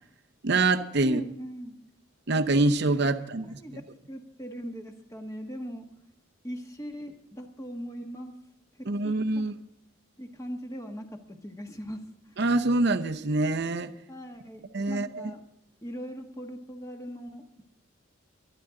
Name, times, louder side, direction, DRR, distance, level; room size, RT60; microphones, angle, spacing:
voice 1, 0.4-1.2 2.3-3.6 8.9-9.5 12.4-13.9 14.7-15.3, right 2 dB, 55° right, 0.7 m, -25 dB
voice 2, 1.0-1.8 3.6-3.8 4.1-5.9 6.4-8.4 8.8-9.4 10.2-12.4 14.1-15.4 15.8-17.6, equal, 15° left, 1.4 m, -40 dB
24.0 x 10.0 x 3.8 m
head